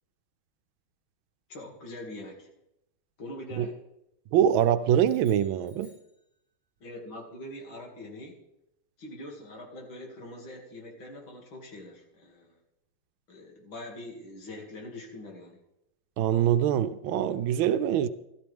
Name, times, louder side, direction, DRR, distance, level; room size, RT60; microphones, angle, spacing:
voice 1, 1.5-2.5 3.2-3.7 6.8-8.4 9.0-12.6 13.3-15.6, left 1 dB, 70° left, 0 dB, 3.1 m, -43 dB
voice 2, 4.3-5.9 16.2-18.1, right 10 dB, 80° right, 12 dB, 1.4 m, -24 dB
sound 1, 5.0-6.8, left 2 dB, 50° left, 7.1 m, -62 dB
14.5 x 13.0 x 3.5 m, 0.84 s
omnidirectional pair, 2.2 m